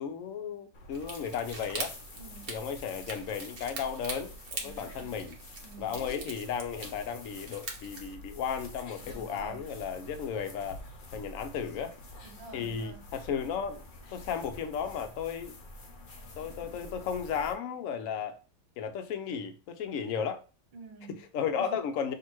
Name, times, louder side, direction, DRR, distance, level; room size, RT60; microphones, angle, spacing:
voice 1, 0.0-1.9 2.5-5.4 5.8-10.8 11.1-12.0 12.5-13.8 14.1-15.6 16.4-18.4 18.8-20.4 21.1-22.1, left 7 dB, 70° left, 0.8 m, -34 dB
sound 1, 0.7-17.5, left 1 dB, 90° left, 0.4 m, -47 dB
sound 2, 0.9-8.1, right 3 dB, 45° right, 0.8 m, -43 dB
voice 2, 2.1-2.5 4.6-5.2 5.6-6.0 9.0-9.6 12.2-13.0 20.7-21.2 21.6-21.8, right 3 dB, 80° right, 1.7 m, -48 dB
5.8 x 2.7 x 3.0 m
omnidirectional pair, 1.9 m